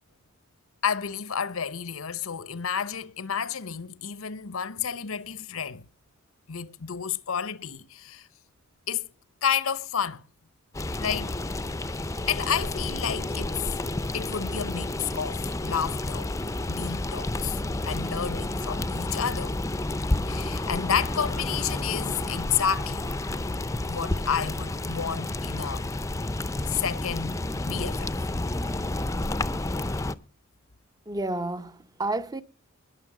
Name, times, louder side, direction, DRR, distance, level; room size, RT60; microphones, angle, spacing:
voice 1, 0.8-5.9 6.5-8.3 8.9-9.1 9.4-10.2 11.0-11.4 12.3-13.6 14.1-16.3 16.7-19.6 20.3-23.1 23.9-25.9 26.7-28.1, left 7 dB, 85° left, 0.9 m, -30 dB
sound 1, 10.7-30.2, left 2 dB, 15° left, 0.6 m, -30 dB
voice 2, 31.1-32.4, right 2 dB, 20° right, 0.8 m, -30 dB
20.5 x 7.0 x 4.9 m
head